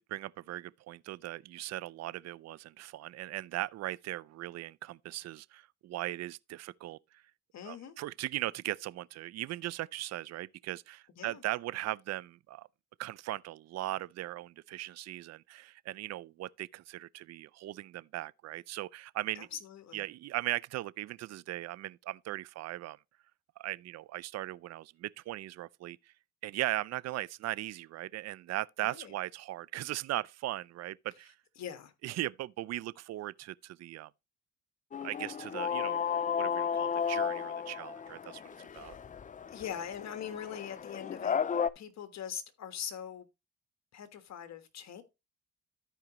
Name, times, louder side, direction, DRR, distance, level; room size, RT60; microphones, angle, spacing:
voice 1, 0.0-7.2 7.6-12.7 13.0-19.5 19.9-23.0 23.6-26.1 26.4-31.4 32.0-34.1 35.0-39.0, right 15 dB, 60° right, 0.4 m, -38 dB
voice 2, 7.5-7.9 11.2-11.4 19.3-20.0 28.8-29.1 31.6-31.9 38.7-39.0 39.5-41.4 41.7-43.3 43.9-45.0, left 9 dB, 60° left, 1.4 m, -42 dB
sound 1, 34.9-41.7, left 7 dB, 25° left, 0.4 m, -34 dB
14.0 x 4.9 x 3.0 m
cardioid pair, 90°, 30 cm